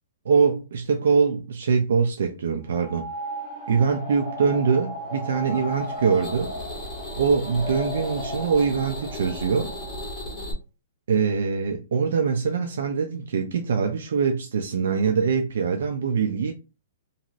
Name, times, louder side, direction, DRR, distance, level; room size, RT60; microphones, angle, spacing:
voice 1, 0.2-3.1 3.7-6.5 7.2-9.7 11.1-16.5, right 5 dB, 75° right, 0.5 m, -23 dB
sound 1, 2.7-10.4, equal, 10° right, 1.1 m, -36 dB
sound 2, 5.7-10.5, left 1 dB, 20° left, 0.7 m, -37 dB
3.0 x 2.6 x 2.5 m
hypercardioid pair, 175°, 0 cm